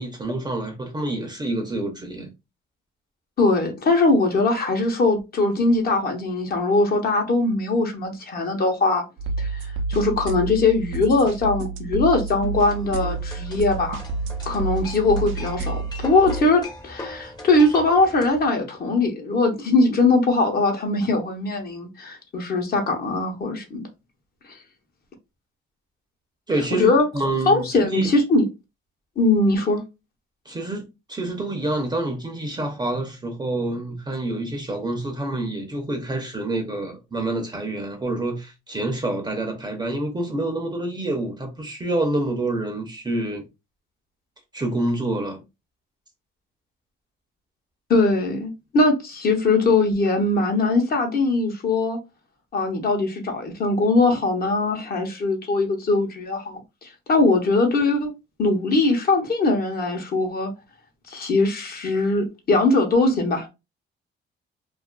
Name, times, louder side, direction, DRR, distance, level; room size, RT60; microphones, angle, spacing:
voice 1, 0.0-2.3 26.5-28.1 30.5-43.5 44.5-45.4, right 2 dB, 20° right, 0.6 m, -27 dB
voice 2, 3.4-9.0 9.4-14.0 14.5-23.9 26.7-27.1 27.5-28.5 29.2-29.8 47.9-52.0 52.5-58.1 58.4-60.5 61.1-63.5, left 2 dB, 50° left, 0.9 m, -21 dB
sound 1, 9.2-16.4, right 3 dB, 80° right, 0.5 m, -29 dB
sound 2, 12.5-18.5, left 2 dB, 20° left, 0.7 m, -39 dB
2.4 x 2.3 x 2.2 m
cardioid pair, 90°, 20 cm